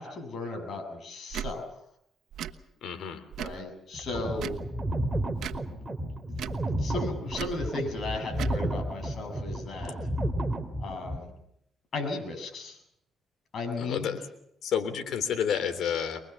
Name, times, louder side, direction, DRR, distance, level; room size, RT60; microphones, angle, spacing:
voice 1, 0.0-1.6 3.4-4.6 5.7-6.5 6.8-10.0 10.8-11.3 11.9-12.8 13.5-14.2, left 3 dB, 55° left, 4 dB, 7.6 m, -36 dB
Tick / Tick-tock, 1.3-1.5 2.3-2.5 3.3-3.6 4.3-4.6 5.3-5.6 6.3-6.6 7.3-7.6 8.3-8.6, right 10 dB, 75° right, 1.2 m, -36 dB
voice 2, 2.8-3.2 13.8-14.2 14.6-16.2, left 8 dB, 70° left, 8 dB, 3.4 m, -30 dB
sound 1, 3.9-11.2, right 1 dB, 15° right, 3.0 m, -32 dB
24.0 x 21.5 x 7.2 m, 0.74 s
cardioid pair, 90°, 0 cm